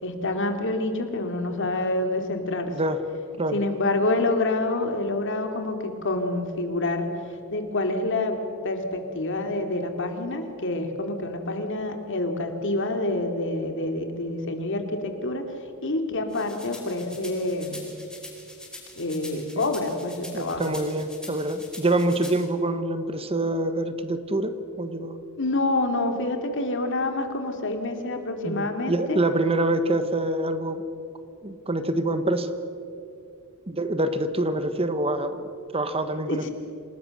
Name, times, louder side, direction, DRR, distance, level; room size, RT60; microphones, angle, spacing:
voice 1, 0.0-2.7 3.5-7.1 7.5-15.5 15.8-17.8 18.9-20.8 25.4-29.2 36.3-36.5, left 2 dB, 60° left, 5 dB, 2.5 m, -27 dB
voice 2, 2.7-3.0 3.4-3.6 20.3-25.2 28.4-30.8 31.4-32.5 33.7-36.5, right 1 dB, 25° right, 10 dB, 1.1 m, -26 dB
sound 1, 16.3-22.4, left 2 dB, 5° left, 4.8 m, -43 dB
28.0 x 19.0 x 6.6 m, 2.6 s
head